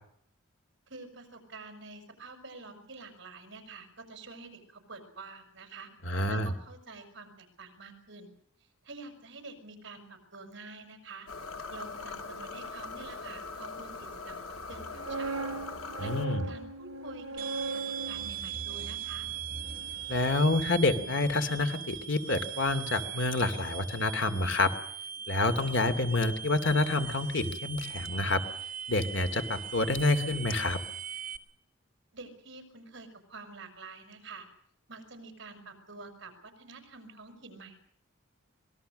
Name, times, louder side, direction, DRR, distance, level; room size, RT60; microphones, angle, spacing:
voice 1, 0.9-5.9 6.3-8.3 8.8-11.3 11.7-15.5 15.8-19.3 32.1-34.5 34.9-37.9, right 3 dB, 55° right, 8 dB, 6.1 m, -48 dB
voice 2, 6.1-6.5 16.0-16.5 20.1-24.7 25.3-28.4 28.9-30.8, left 2 dB, 60° left, 9 dB, 2.6 m, -28 dB
sound 1, 11.3-16.3, left 4 dB, 85° left, 3.4 m, -41 dB
sound 2, 14.7-20.6 20.9-21.2, right 2 dB, 75° right, 4.9 m, -39 dB
sound 3, 17.4-31.4, right 9 dB, 40° right, 2.0 m, -40 dB
25.5 x 21.0 x 6.6 m, 0.67 s
head